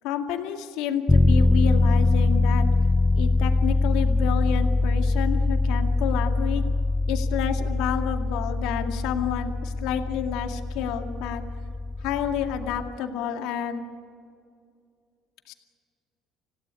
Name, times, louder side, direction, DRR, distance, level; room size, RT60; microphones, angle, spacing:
voice 1, 0.0-2.7 3.2-6.6 7.1-11.4 12.0-13.8 15.5-15.6, left 8 dB, 80° left, 5 dB, 2.2 m, -29 dB
sound 1, 1.1-12.9, left 3 dB, 15° left, 0.7 m, -23 dB
27.0 x 16.5 x 10.0 m, 2.3 s
supercardioid pair, 85°, 0 cm